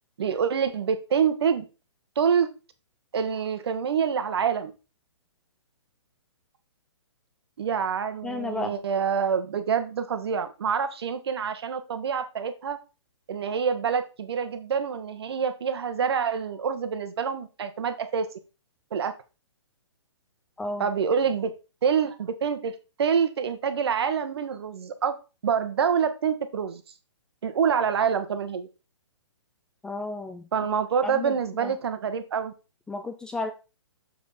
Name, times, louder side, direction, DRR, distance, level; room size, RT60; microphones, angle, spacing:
voice 1, 0.2-1.6 2.2-2.5 3.1-4.7 7.6-12.8 13.3-18.3 18.9-19.1 20.8-21.5 21.8-25.1 25.4-26.8 27.4-28.7 30.5-32.5, right 7 dB, 60° right, 10 dB, 1.3 m, -26 dB
voice 2, 8.2-8.8 20.6-20.9 29.8-30.4 31.0-31.3 31.6-31.7 32.9-33.5, left 2 dB, 5° left, 7 dB, 0.4 m, -32 dB
6.9 x 5.6 x 4.1 m, 0.31 s
figure-of-eight pair, 135°, 15 cm